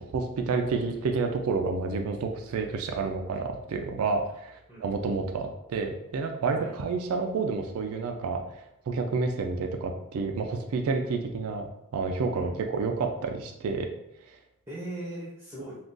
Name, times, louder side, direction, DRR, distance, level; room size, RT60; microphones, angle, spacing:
voice 1, 0.0-11.7 11.9-13.9 14.3-14.4, right 4 dB, 75° right, 4 dB, 0.3 m, -29 dB
voice 2, 12.3-13.0 14.7-15.8, right 1 dB, 10° right, -7 dB, 0.6 m, -40 dB
2.5 x 2.3 x 3.6 m, 0.84 s
head